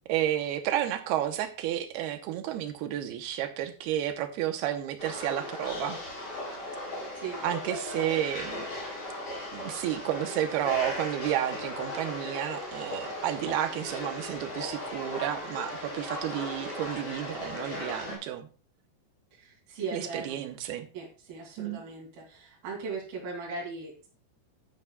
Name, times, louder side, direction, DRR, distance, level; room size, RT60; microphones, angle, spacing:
voice 1, 0.1-6.0 7.4-8.7 9.5-18.5 19.9-20.9 21.6-21.8, right 12 dB, 75° right, 8 dB, 2.7 m, -31 dB
sound 1, 5.0-18.2, left 1 dB, 40° left, 5.3 m, -37 dB
voice 2, 19.3-20.4 20.9-24.1, right 4 dB, 60° right, -3 dB, 4.6 m, -38 dB
12.0 x 9.4 x 2.3 m, 0.37 s
omnidirectional pair, 4.9 m